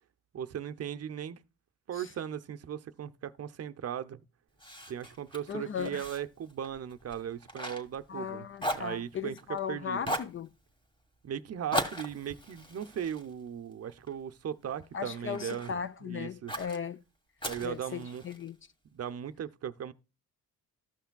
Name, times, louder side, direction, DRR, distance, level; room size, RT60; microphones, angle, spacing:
voice 1, 0.3-1.4 1.9-4.2 4.9-8.5 8.7-9.4 9.7-10.1 11.2-16.5 17.4-18.2 18.9-19.9, right 9 dB, 40° right, 0.6 m, -38 dB
Fire, 4.6-8.3 8.6-9.6 10.0-10.4 11.7-14.1 14.6-15.8 16.5-16.8 17.4-18.5, equal, 15° left, 1.6 m, -38 dB
voice 2, 5.5-6.0 8.1-10.5 14.9-17.0 17.6-18.6, left 7 dB, 35° left, 0.4 m, -37 dB
14.0 x 5.7 x 2.2 m
cardioid pair, 95°, 37 cm